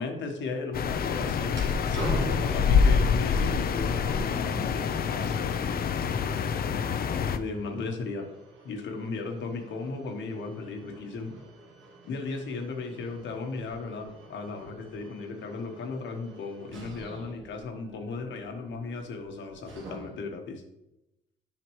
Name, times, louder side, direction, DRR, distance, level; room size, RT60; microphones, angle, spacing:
voice 1, 0.0-5.6 7.3-8.3 8.6-11.3 12.0-20.6, left 3 dB, 70° left, 4 dB, 1.2 m, -36 dB
sound 1, 0.7-7.4, left 6 dB, 50° left, 0.5 m, -26 dB
sound 2, 1.5-20.4, right 3 dB, 70° right, 1.7 m, -46 dB
7.4 x 5.0 x 3.1 m, 0.88 s
cardioid pair, 90°, 20 cm